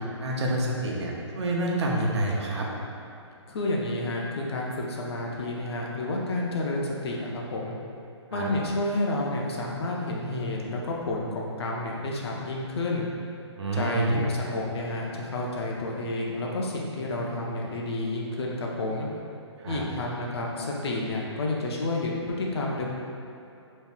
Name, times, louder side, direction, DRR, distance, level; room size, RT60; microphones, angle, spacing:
voice 1, 0.0-2.7 8.3-8.5 13.6-14.2 19.6-19.8, right 1 dB, 70° right, -2 dB, 0.8 m, -28 dB
voice 2, 3.5-7.7 8.3-13.1 13.7-19.1 19.7-22.9, left 2 dB, 60° left, -2 dB, 0.8 m, -30 dB
5.3 x 3.1 x 2.4 m, 2.7 s
hypercardioid pair, 150°, 15 cm